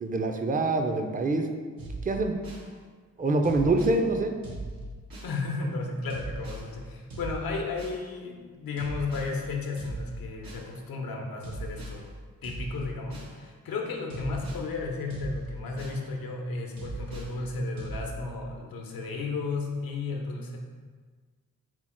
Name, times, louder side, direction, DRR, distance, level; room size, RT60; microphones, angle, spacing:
voice 1, 0.0-1.5 2.0-2.3 3.2-4.3, right 2 dB, 25° right, 5 dB, 0.5 m, -25 dB
sound 1, 1.8-2.7 3.4-4.0 4.4-5.4 6.1-6.7 7.1-8.0 8.8-9.3 9.8-10.7 11.4-12.0 12.4-13.3 14.1-14.7 15.1-16.0 16.8-17.3 17.8-18.1, right 2 dB, 80° right, 0.9 m, -39 dB
voice 2, 5.2-12.1 12.4-20.6, left 3 dB, 80° left, 1 dB, 0.7 m, -34 dB
4.5 x 2.0 x 4.3 m, 1.5 s
supercardioid pair, 40°, 35 cm